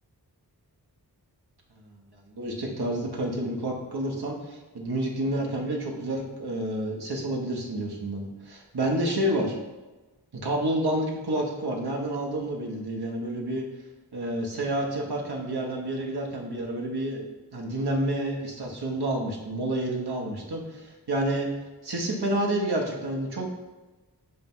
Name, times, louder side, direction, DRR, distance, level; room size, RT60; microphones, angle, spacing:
voice 1, 2.3-9.6 10.3-13.7 14.1-17.2 17.5-21.5 21.8-23.5, right 1 dB, 70° right, -1 dB, 1.2 m, -29 dB
10.0 x 5.5 x 2.3 m, 1.2 s
wide cardioid pair, 75°, 40 cm